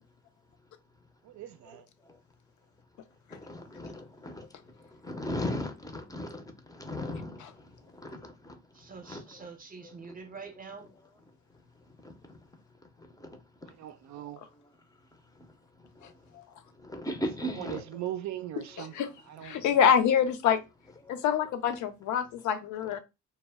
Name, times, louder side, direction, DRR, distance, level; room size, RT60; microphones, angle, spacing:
voice 1, 1.2-1.9 13.6-14.4 17.4-18.9 19.3-19.8, right 12 dB, 70° right, 0.4 m, -39 dB
voice 2, 3.4-4.5 5.0-6.4 6.7-7.4 8.0-8.5 9.1-9.2 16.8-18.0 21.4-21.5, left 1 dB, 10° left, 0.5 m, -36 dB
voice 3, 8.7-10.9, right 4 dB, 30° right, 0.6 m, -45 dB
voice 4, 18.8-19.1 19.4-20.6 21.1-23.0, left 8 dB, 75° left, 0.5 m, -26 dB
2.1 x 2.1 x 3.3 m
cardioid pair, 90°, 30 cm